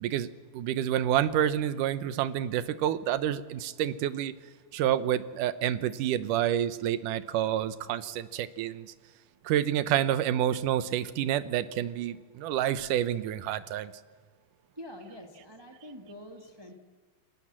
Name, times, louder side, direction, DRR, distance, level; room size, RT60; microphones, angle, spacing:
voice 1, 0.5-4.3 4.7-8.9 9.4-13.9, right 11 dB, 75° right, 14 dB, 2.4 m, -28 dB
voice 2, 14.7-16.7, left 1 dB, 15° right, 3 dB, 1.1 m, -46 dB
29.0 x 20.5 x 7.5 m, 1.4 s
omnidirectional pair, 3.9 m